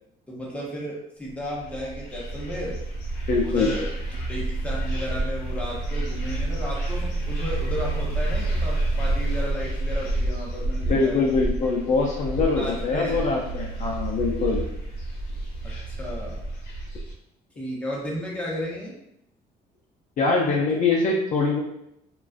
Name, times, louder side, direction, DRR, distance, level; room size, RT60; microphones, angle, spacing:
voice 1, 0.3-2.8 3.4-11.2 12.5-13.2 15.6-16.4 17.6-19.0, equal, 5° left, -5 dB, 0.7 m, -33 dB
sound 1, 1.4-17.1, right 2 dB, 85° left, 0.7 m, -29 dB
voice 2, 3.3-3.7 10.9-14.6 20.2-21.6, left 4 dB, 50° left, -2 dB, 0.4 m, -23 dB
2.4 x 2.2 x 2.4 m, 0.78 s
cardioid pair, 110°, 17 cm